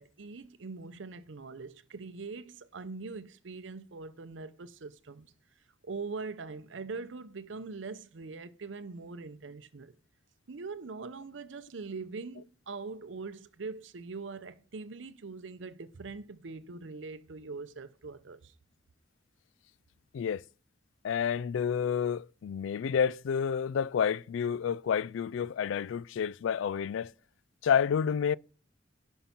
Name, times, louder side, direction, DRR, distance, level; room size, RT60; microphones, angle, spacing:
voice 1, 0.0-5.3 5.8-9.9 10.5-18.5, right 4 dB, 75° right, 0.6 m, -42 dB
voice 2, 21.0-27.1 27.6-28.4, left 7 dB, 80° left, 0.3 m, -29 dB
11.5 x 5.5 x 4.3 m
head